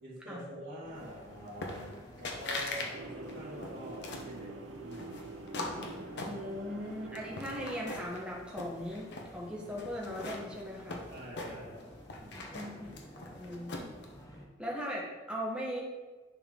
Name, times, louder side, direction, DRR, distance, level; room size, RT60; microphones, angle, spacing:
voice 1, 0.0-4.5 4.8-5.2 6.4-6.5 11.1-11.9 12.2-12.5, equal, 50° right, -12 dB, 2.7 m, -46 dB
sound 1, 0.8-14.5, equal, 20° left, 0.9 m, -52 dB
sound 2, 1.6-2.0 2.2-2.9 3.2-4.3 4.9-6.8 7.2-8.2 8.5-9.3 9.8-11.8 12.1-14.1, left 2 dB, 60° left, 1.0 m, -40 dB
sound 3, 2.9-8.1, right 3 dB, 75° right, 0.6 m, -46 dB
voice 2, 6.2-11.0 12.5-12.9 13.4-13.7 14.6-15.8, equal, 5° right, -4 dB, 1.3 m, -39 dB
10.5 x 4.7 x 3.7 m, 1.3 s
head